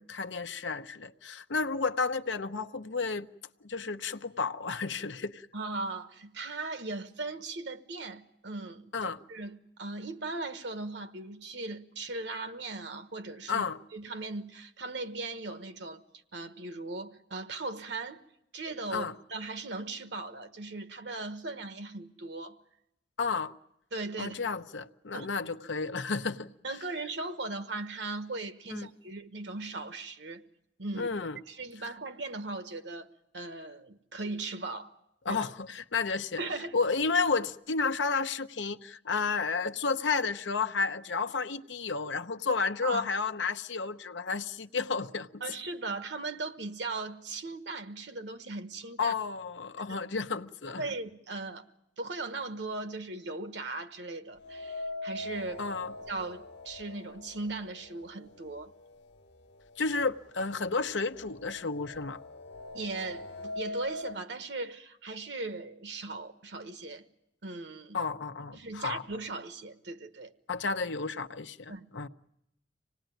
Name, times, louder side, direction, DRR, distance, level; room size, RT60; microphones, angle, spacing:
voice 1, 0.0-3.3 3.6-5.5 8.9-9.2 13.5-13.8 18.9-19.1 23.2-23.5 24.2-26.5 28.7-28.9 31.0-31.4 35.2-36.4 36.7-45.4 49.0-50.8 55.6-55.9 59.8-62.2 67.9-69.0 70.5-72.1, left 4 dB, 90° left, 0.8 m, -32 dB
voice 2, 5.5-8.9 9.3-13.6 13.9-16.0 16.3-18.2 18.5-22.6 23.9-24.3 25.1-25.3 26.6-30.4 30.8-31.1 31.5-33.1 33.3-34.9 35.2-35.4 36.4-36.7 42.8-43.0 45.4-49.1 50.8-51.6 52.0-55.6 56.1-58.7 62.7-67.0 67.4-68.0 68.5-70.3 71.7-71.8, right 3 dB, 70° right, 1.3 m, -38 dB
sound 1, 54.4-58.5 58.8-58.9 59.9-60.0 60.4-64.2, left 2 dB, 70° left, 1.3 m, -42 dB
26.0 x 18.5 x 9.2 m
head